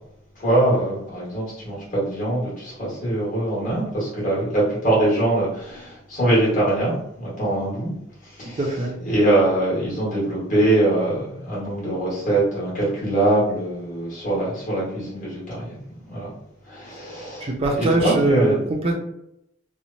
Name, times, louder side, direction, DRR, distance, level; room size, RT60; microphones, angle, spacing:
voice 1, 0.4-7.9 8.4-15.7 16.1-16.3 16.7-18.6, right 1 dB, 45° left, -7 dB, 1.3 m, -23 dB
voice 2, 8.6-8.9 17.4-19.0, right 1 dB, 30° right, -1 dB, 0.4 m, -22 dB
3.0 x 2.1 x 2.6 m, 0.78 s
head